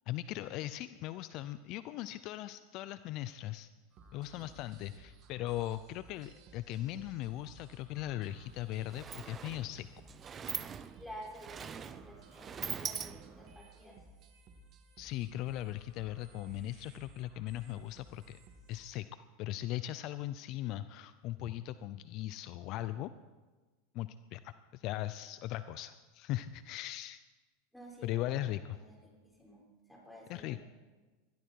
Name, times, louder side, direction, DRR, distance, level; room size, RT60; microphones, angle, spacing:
voice 1, 0.1-3.7 4.1-9.9 15.0-18.4 18.7-23.1 23.9-27.2 28.0-28.8 30.3-30.6, left 14 dB, 50° left, 13 dB, 0.6 m, -39 dB
sound 1, 3.9-18.9, right 2 dB, 45° right, 2.6 m, -58 dB
Sliding door, 8.2-8.4 8.6-13.6, right 7 dB, 25° right, 0.8 m, -43 dB
voice 2, 10.1-14.0 27.7-30.6, equal, ahead, -3 dB, 6.2 m, -52 dB
21.0 x 14.0 x 4.7 m, 1.3 s
hypercardioid pair, 110°, 0 cm